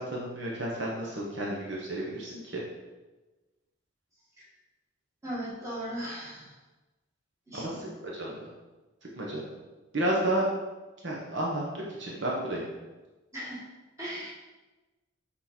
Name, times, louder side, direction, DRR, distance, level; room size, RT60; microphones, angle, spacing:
voice 1, 0.0-2.6 7.5-8.5 9.1-9.5 9.9-10.5 11.0-12.6, right 1 dB, 65° right, -3 dB, 1.0 m, -32 dB
voice 2, 5.2-6.5 7.5-7.9 13.3-13.6 14.0-14.3, equal, 15° right, -9 dB, 2.1 m, -37 dB
6.2 x 3.9 x 4.4 m, 1.2 s
head